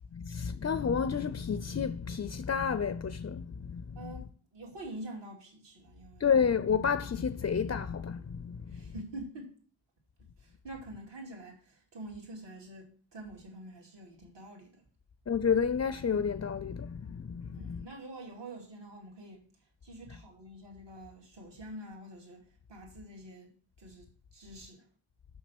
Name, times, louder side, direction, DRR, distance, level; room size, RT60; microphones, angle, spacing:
voice 1, 0.1-4.2 6.2-8.9 15.3-17.9 20.1-20.2, left 6 dB, 35° left, 0.5 m, -31 dB
voice 2, 4.0-6.4 8.7-9.6 10.2-14.8 17.5-19.4 19.8-24.9, right 1 dB, 65° right, 2.5 m, -46 dB
6.3 x 5.9 x 5.9 m
cardioid pair, 65°, 46 cm